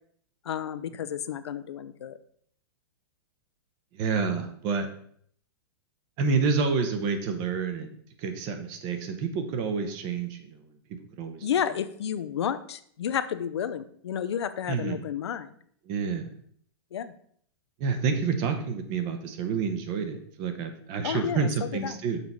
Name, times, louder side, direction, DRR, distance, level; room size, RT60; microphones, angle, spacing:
voice 1, 0.4-2.2 11.4-15.5 16.9-17.1 21.0-22.0, left 9 dB, 85° left, 12 dB, 0.7 m, -31 dB
voice 2, 3.9-4.9 6.2-7.9 8.2-10.7 11.2-11.5 14.7-15.0 15.9-16.3 17.8-22.2, right 5 dB, 30° right, 7 dB, 0.9 m, -28 dB
6.8 x 4.7 x 5.4 m, 0.62 s
hypercardioid pair, 165°, 14 cm